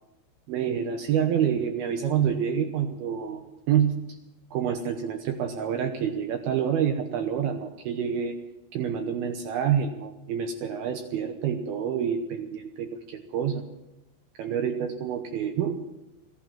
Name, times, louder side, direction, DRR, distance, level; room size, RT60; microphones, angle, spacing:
voice 1, 0.5-4.1 4.5-8.4 8.7-13.7 14.4-15.8, right 8 dB, 85° right, 6 dB, 2.2 m, -27 dB
17.0 x 11.5 x 7.4 m, 0.94 s
omnidirectional pair, 5.8 m